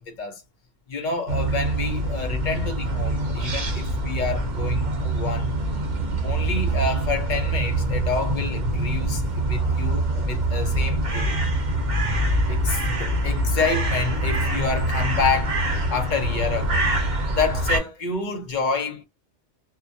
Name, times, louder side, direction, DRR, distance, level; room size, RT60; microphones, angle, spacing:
voice 1, 0.1-0.4 0.9-5.5 6.2-11.3 12.5-15.6 15.9-16.9 17.3-19.0, left 4 dB, 50° left, 0.6 m, -28 dB
sound 1, 1.3-17.8, right 1 dB, 45° right, 0.8 m, -24 dB
2.2 x 2.2 x 2.6 m
omnidirectional pair, 1.3 m